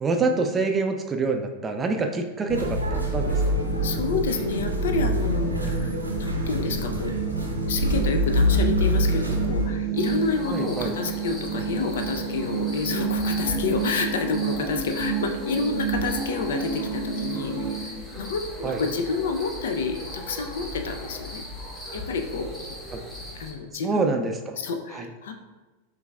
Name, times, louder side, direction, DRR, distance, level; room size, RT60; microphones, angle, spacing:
voice 1, 0.0-3.5 5.8-6.0 10.5-10.9 18.6-18.8 22.9-23.0 23.8-24.6 24.9-25.1, right 3 dB, 20° right, 4 dB, 0.4 m, -26 dB
sound 1, 2.5-17.8, right 5 dB, 45° left, 1.5 m, -30 dB
sound 2, 2.5-9.6, equal, 90° right, 0.6 m, -25 dB
voice 2, 3.8-5.9 6.2-7.1 7.7-21.4 21.9-22.7 23.3-24.3 24.6-25.3, left 4 dB, 60° left, 6 dB, 0.4 m, -29 dB
sound 3, 9.9-23.5, left 1 dB, 15° left, 1.2 m, -38 dB
6.5 x 2.6 x 2.3 m, 1.2 s
figure-of-eight pair, 90°, 0 cm